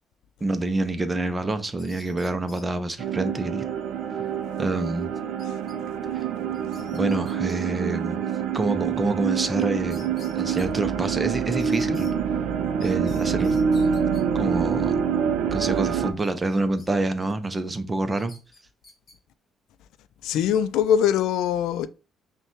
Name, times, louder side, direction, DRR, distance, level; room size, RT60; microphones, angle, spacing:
voice 1, 0.4-3.6 4.6-5.1 6.9-8.2 8.5-10.1 10.3-12.1 12.8-13.6 14.3-15.0 15.5-18.3, right 2 dB, 15° right, 0.5 m, -27 dB
sound 1, 1.5-2.7 5.4-5.8 6.1-6.2 6.5-7.5 9.6-9.7 9.9-10.7 11.6-12.1 12.8-14.2 15.9-16.9 17.2-17.5 18.2-19.2, left 3 dB, 30° left, 1.3 m, -50 dB
sound 2, 3.0-16.1, right 7 dB, 80° right, 0.5 m, -26 dB
voice 2, 20.2-21.9, left 9 dB, 80° left, 0.3 m, -22 dB
5.6 x 2.2 x 3.0 m
cardioid pair, 155°, 0 cm